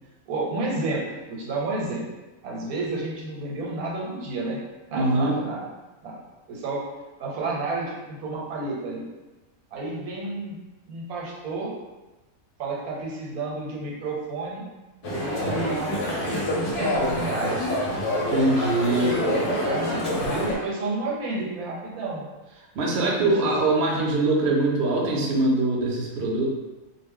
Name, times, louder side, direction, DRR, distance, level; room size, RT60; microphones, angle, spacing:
voice 1, 0.3-2.0 2.4-4.6 4.9-5.6 6.0-6.2 6.5-6.9 7.2-9.0 9.7-10.6 10.9-11.7 12.6-14.6 15.1-17.6 19.6-22.3 22.9-23.7, right 2 dB, 85° right, -4 dB, 1.2 m, -31 dB
voice 2, 4.9-5.4 18.3-19.4 22.7-26.5, right 2 dB, 60° right, -2 dB, 0.7 m, -23 dB
sound 1, 15.0-20.6, left 1 dB, 55° left, 0.6 m, -26 dB
2.4 x 2.1 x 3.5 m, 1.1 s
omnidirectional pair, 1.5 m